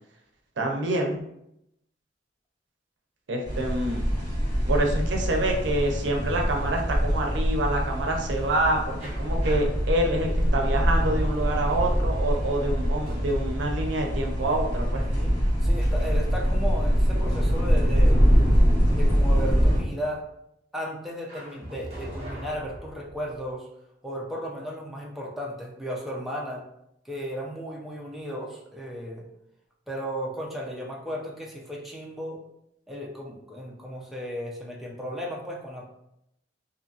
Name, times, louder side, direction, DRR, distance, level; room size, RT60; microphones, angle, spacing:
voice 1, 0.6-1.2 3.3-4.0 4.7-15.0, right 1 dB, 70° right, 1 dB, 0.5 m, -27 dB
sound 1, 3.4-19.8, equal, 60° left, 1.3 m, -24 dB
sound 2, 9.0-15.8 21.3-23.5, right 1 dB, 35° right, 0.9 m, -42 dB
voice 2, 14.9-15.3 15.6-18.2 18.9-20.2 20.7-23.7 24.0-26.6 27.1-29.3 29.9-32.4 32.9-35.9, equal, ahead, -3 dB, 0.4 m, -35 dB
2.7 x 2.6 x 2.4 m, 0.79 s
head